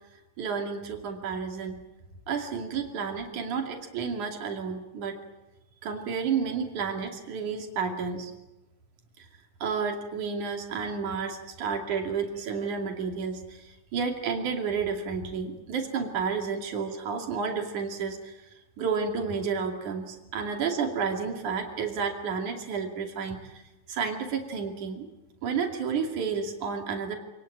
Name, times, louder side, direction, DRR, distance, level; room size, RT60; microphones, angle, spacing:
voice 1, 0.4-1.8 2.3-5.2 5.8-8.3 9.2-9.3 9.6-18.5 18.8-23.6 23.9-25.1 25.4-27.2, right 5 dB, 85° right, 3 dB, 4.1 m, -31 dB
27.5 x 19.5 x 8.9 m, 1.0 s
omnidirectional pair, 3.4 m